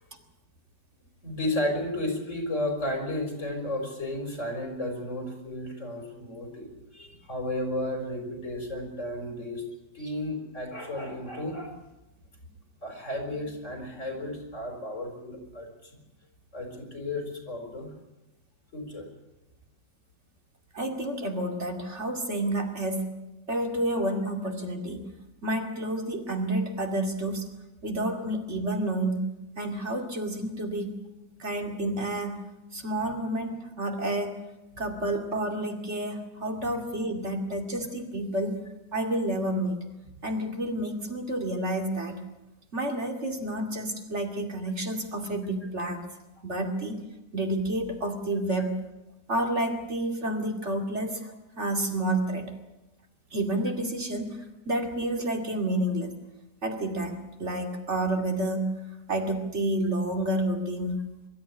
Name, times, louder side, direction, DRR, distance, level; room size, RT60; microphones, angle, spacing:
voice 1, 1.2-9.6 9.9-11.7 12.8-15.7 16.5-17.9 18.7-19.1, left 1 dB, 45° left, 4 dB, 4.9 m, -33 dB
voice 2, 20.7-23.1 23.5-25.1 25.4-27.5 27.8-29.3 29.6-31.0 31.4-32.4 32.7-34.4 34.8-38.6 38.9-39.8 40.2-42.2 42.7-46.0 46.4-47.0 47.3-48.8 49.3-52.5 53.3-56.1 56.6-58.7 59.1-61.0, right 1 dB, 40° right, 4 dB, 2.8 m, -29 dB
23.5 x 13.0 x 9.9 m, 0.97 s
omnidirectional pair, 1.8 m